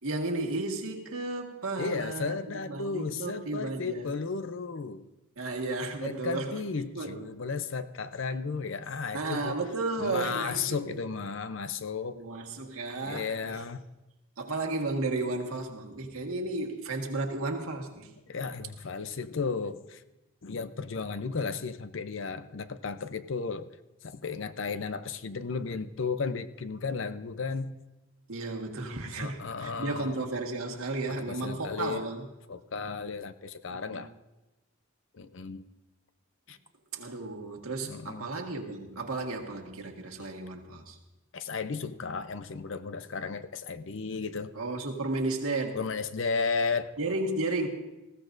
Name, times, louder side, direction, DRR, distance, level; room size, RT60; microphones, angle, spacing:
voice 1, 0.0-4.1 5.4-6.6 6.9-7.2 9.1-11.0 12.1-13.5 14.4-18.1 28.3-32.3 33.7-34.0 36.9-41.0 44.5-45.8 47.0-47.7, right 2 dB, 90° right, 2 dB, 1.7 m, -33 dB
voice 2, 1.8-5.1 6.0-9.6 10.0-12.2 13.0-13.8 18.3-20.0 20.4-23.7 24.0-27.8 29.2-30.2 31.3-32.0 32.5-34.1 35.1-35.7 36.5-36.6 37.9-38.3 40.2-40.3 41.3-44.5 45.7-46.9, left 4 dB, 65° left, 11 dB, 0.6 m, -34 dB
19.5 x 15.0 x 2.6 m, 1.0 s
head